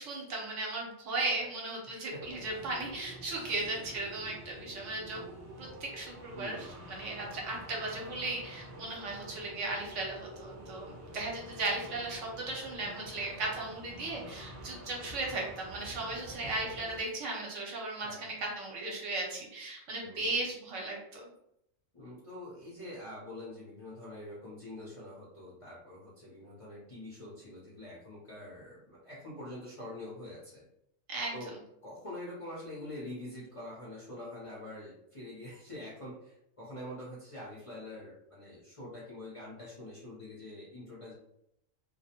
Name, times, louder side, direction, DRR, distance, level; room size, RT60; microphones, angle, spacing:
voice 1, 0.0-21.2 31.1-31.4, right 2 dB, 70° right, -2 dB, 1.0 m, -36 dB
voice 2, 1.9-2.2 2.5-2.9 3.4-3.6 3.9-4.0 6.3-6.7 13.0-13.4 16.1-16.3 17.9-18.3 20.0-20.4 21.9-30.6 31.3-31.5 31.8-41.1, left 1 dB, 35° left, -8 dB, 0.6 m, -45 dB
sound 1, 2.2-17.0, right 1 dB, 45° right, 0.5 m, -48 dB
2.4 x 2.0 x 2.8 m, 0.76 s
omnidirectional pair, 1.4 m